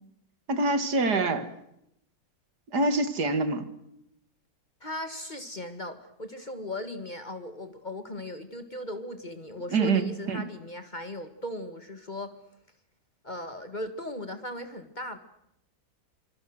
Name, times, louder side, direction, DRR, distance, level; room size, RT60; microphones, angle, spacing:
voice 1, 0.5-1.5 2.7-3.6 9.7-10.5, right 3 dB, 70° right, 11 dB, 2.4 m, -25 dB
voice 2, 4.8-12.3 13.2-15.2, left 1 dB, 25° left, 9 dB, 1.8 m, -38 dB
26.0 x 26.0 x 6.5 m, 0.80 s
omnidirectional pair, 1.8 m